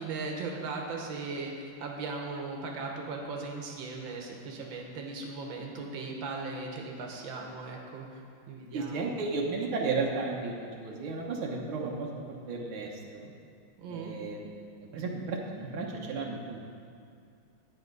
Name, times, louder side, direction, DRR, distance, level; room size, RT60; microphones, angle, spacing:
voice 1, 0.0-8.2 8.5-9.7 13.8-14.1, right 3 dB, 75° right, 0 dB, 1.9 m, -38 dB
voice 2, 8.7-12.1 12.5-12.9 13.2-13.3 13.9-14.5 14.9-16.7, right 3 dB, 90° right, -1 dB, 1.9 m, -33 dB
10.5 x 9.1 x 5.3 m, 2.4 s
omnidirectional pair, 2.2 m